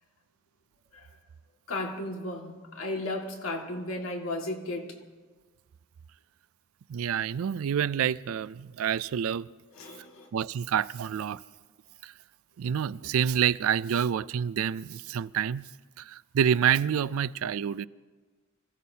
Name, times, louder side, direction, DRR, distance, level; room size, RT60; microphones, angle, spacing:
voice 1, 1.7-5.0 9.7-10.3, left 2 dB, 85° left, 2.0 m, -35 dB
voice 2, 6.9-9.5 10.3-11.4 12.0-12.1 12.6-15.7 16.0-17.9, right 8 dB, 90° right, 0.4 m, -28 dB
26.0 x 15.5 x 2.8 m
head